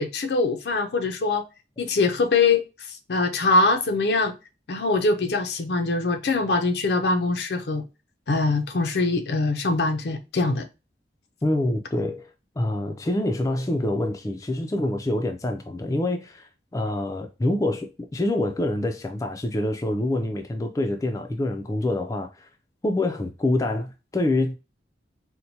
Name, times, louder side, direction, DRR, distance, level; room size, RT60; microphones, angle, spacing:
voice 1, 0.0-1.4 1.8-4.3 4.7-7.8 8.3-10.7, left 3 dB, 70° left, 0.5 m, -23 dB
voice 2, 11.4-12.3 12.6-22.5 22.8-24.5, left 1 dB, 20° left, 0.3 m, -26 dB
4.4 x 2.1 x 2.7 m
head